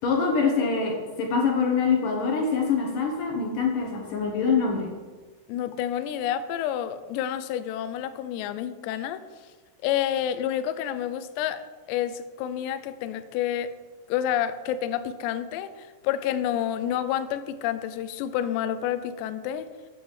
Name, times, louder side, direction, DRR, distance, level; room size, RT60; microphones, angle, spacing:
voice 1, 0.0-4.9, left 5 dB, 65° left, 0 dB, 2.3 m, -24 dB
voice 2, 5.5-9.2 9.8-13.7 14.1-19.7, left 10 dB, 80° left, 12 dB, 2.7 m, -29 dB
9.1 x 7.0 x 7.1 m, 1.4 s
omnidirectional pair, 5.2 m